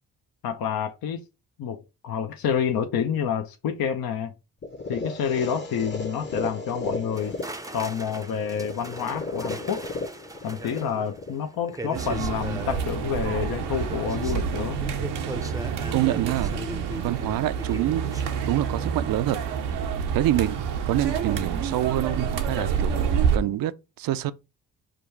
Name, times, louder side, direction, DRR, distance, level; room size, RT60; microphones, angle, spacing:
voice 1, 0.4-1.2 1.6-4.3 4.9-7.3 7.7-9.9 10.4-14.8, left 7 dB, 60° left, 0.7 m, -28 dB
sound 1, 4.6-12.6, left 3 dB, 25° left, 0.9 m, -35 dB
sound 2, 7.1-19.2 19.5-19.8, right 1 dB, 10° right, 0.6 m, -39 dB
sound 3, 11.9-23.4, right 7 dB, 85° right, 0.8 m, -28 dB
voice 2, 15.9-16.6 17.0-18.2 18.5-19.4 20.1-23.7 24.0-24.3, right 13 dB, 60° right, 0.5 m, -26 dB
5.1 x 2.3 x 4.5 m
supercardioid pair, 50°, 40 cm